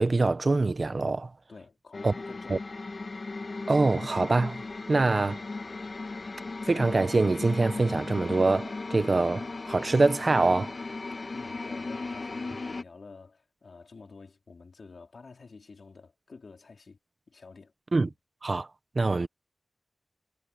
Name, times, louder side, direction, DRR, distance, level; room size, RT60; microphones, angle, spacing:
voice 1, 0.0-1.3 2.0-2.1 2.5-2.6 3.7-4.6 4.9-5.4 6.7-10.7 17.9-18.1 18.4-18.7 18.9-19.3, right 3 dB, 45° right, 0.9 m, -24 dB
voice 2, 1.5-2.8 11.3-17.0 17.3-18.1, left 4 dB, 65° left, 3.8 m, -49 dB
sound 1, 1.9-12.8, left 3 dB, 50° left, 2.0 m, -37 dB
wide cardioid pair, 100°, 0 cm